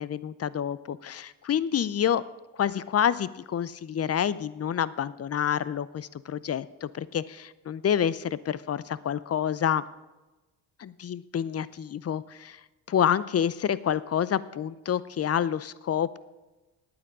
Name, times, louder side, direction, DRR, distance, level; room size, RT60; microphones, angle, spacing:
voice 1, 0.0-2.2 2.5-9.8 10.8-12.6 12.9-16.2, left 9 dB, 35° left, 18 dB, 0.6 m, -28 dB
9.4 x 8.7 x 8.8 m, 1.1 s
supercardioid pair, 65°, 43 cm